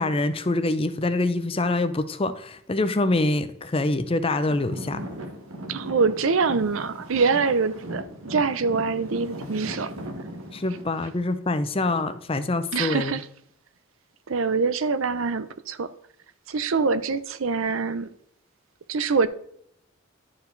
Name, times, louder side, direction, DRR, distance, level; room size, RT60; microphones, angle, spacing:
voice 1, 0.0-5.0 10.5-13.1, left 2 dB, 25° left, 0.5 m, -25 dB
Traffic noise roadway noise / Engine, 4.5-10.8, equal, 90° right, 1.6 m, -38 dB
voice 2, 5.7-8.0 8.3-9.9 12.7-13.2 14.3-15.9 16.5-18.1 18.9-19.3, right 4 dB, 70° right, 0.6 m, -24 dB
11.0 x 4.7 x 3.9 m
head